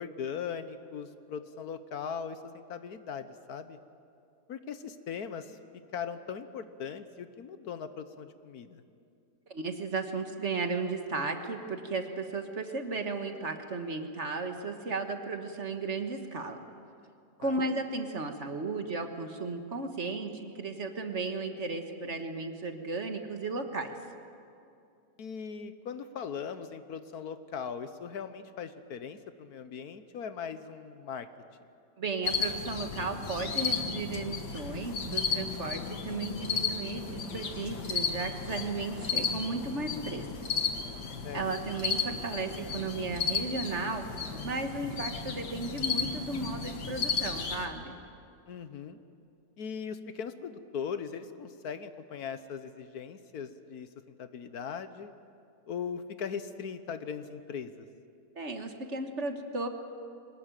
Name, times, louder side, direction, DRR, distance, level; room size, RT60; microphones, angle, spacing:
voice 1, 0.0-3.8 4.5-5.6 5.9-8.8 17.4-17.6 25.2-31.3 41.2-41.5 48.5-49.0 49.6-53.9 54.2-55.1 55.7-57.9, left 7 dB, 65° left, 11 dB, 1.4 m, -39 dB
voice 2, 9.5-16.6 17.4-23.9 32.0-40.3 41.3-44.1 44.4-48.0 58.3-59.7, right 3 dB, 45° right, 6 dB, 1.6 m, -35 dB
sound 1, 32.2-47.7, left 5 dB, 90° left, 2.2 m, -34 dB
23.0 x 19.5 x 9.1 m, 2.5 s
omnidirectional pair, 1.8 m